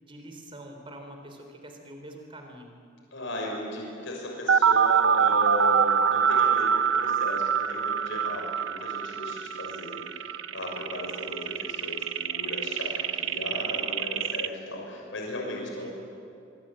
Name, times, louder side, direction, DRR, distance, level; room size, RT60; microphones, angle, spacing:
voice 1, 0.0-2.7 15.8-15.9, right 1 dB, 25° right, 4 dB, 3.8 m, -45 dB
voice 2, 3.1-15.9, left 1 dB, 65° left, -1 dB, 6.3 m, -36 dB
sound 1, 4.5-14.5, right 7 dB, 70° right, 0.9 m, -25 dB
24.5 x 24.0 x 9.1 m, 2.5 s
head